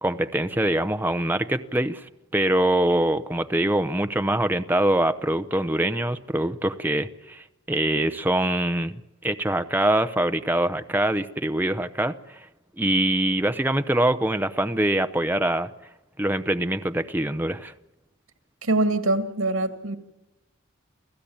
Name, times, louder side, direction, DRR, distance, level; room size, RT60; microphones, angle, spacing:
voice 1, 0.0-12.5 12.8-15.7 16.2-17.7, right 1 dB, 10° right, 0.7 m, -24 dB
voice 2, 18.6-20.0, right 2 dB, 85° right, 2.3 m, -23 dB
29.0 x 15.5 x 8.7 m
head